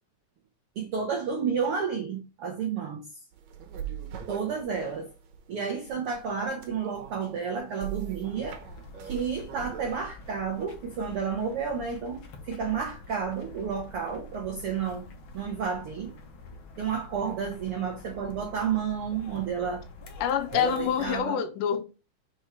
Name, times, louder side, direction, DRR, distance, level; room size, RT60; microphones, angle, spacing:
voice 1, 0.8-3.0 4.3-5.1 5.5-8.6 9.0-15.1 15.3-16.1 16.8-19.8 20.5-21.4, right 6 dB, 80° right, 1.2 m, -31 dB
sound 1, 3.3-9.9, right 9 dB, 65° right, 2.0 m, -42 dB
sound 2, 8.2-21.2, left 2 dB, 65° left, 1.3 m, -47 dB
voice 2, 20.2-21.8, left 9 dB, 80° left, 2.1 m, -26 dB
5.3 x 4.4 x 4.5 m
omnidirectional pair, 3.9 m